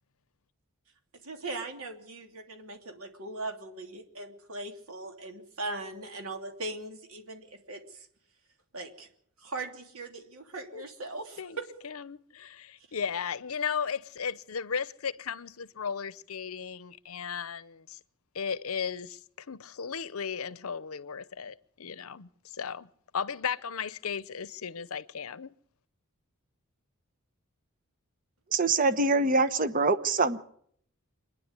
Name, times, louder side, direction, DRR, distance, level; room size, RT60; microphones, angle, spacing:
voice 1, 1.2-8.1 8.7-9.1 9.4-11.6, right 2 dB, 75° right, 3.1 m, -39 dB
voice 2, 11.8-18.0 18.3-22.9 23.1-25.5, left 6 dB, 75° left, 0.8 m, -35 dB
voice 3, 28.5-30.4, right 3 dB, 40° right, 1.0 m, -24 dB
25.5 x 10.5 x 9.7 m
head